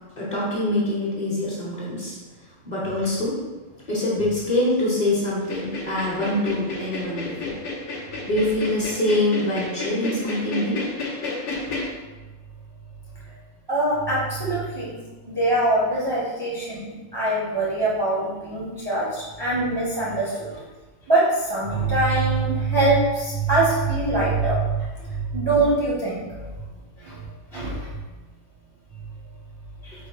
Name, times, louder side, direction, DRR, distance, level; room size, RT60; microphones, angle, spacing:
voice 1, 0.2-2.2 2.6-3.3 3.9-7.6 8.2-11.1, left 1 dB, 35° left, -7 dB, 1.1 m, -24 dB
sound 1, 5.4-11.9, left 3 dB, 70° left, 1.0 m, -31 dB
voice 2, 13.7-15.0 15.3-20.5 21.1-24.9 25.3-26.2 27.0-27.2 27.5-27.8 29.8-29.9, right 2 dB, 25° right, -7 dB, 0.6 m, -23 dB
4.2 x 2.3 x 4.4 m, 1.2 s
omnidirectional pair, 1.3 m